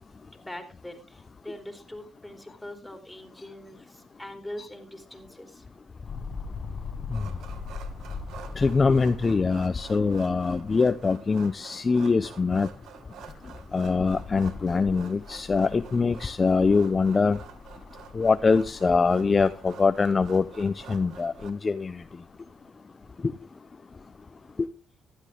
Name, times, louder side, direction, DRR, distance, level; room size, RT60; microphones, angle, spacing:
voice 1, 0.3-1.0 1.4-3.8 4.2-5.5, left 1 dB, 5° left, 3.4 m, -42 dB
sound 1, 6.0-11.1 11.5-11.6 13.0-21.5 22.3-22.4, left 5 dB, 50° left, 1.2 m, -41 dB
sound 2, 7.1-21.5, right 7 dB, 80° right, 1.4 m, -48 dB
voice 2, 8.6-12.7 13.7-17.4 18.2-21.9 23.2-23.3, left 4 dB, 30° left, 0.6 m, -23 dB
15.0 x 11.5 x 3.4 m
cardioid pair, 90°, 0 cm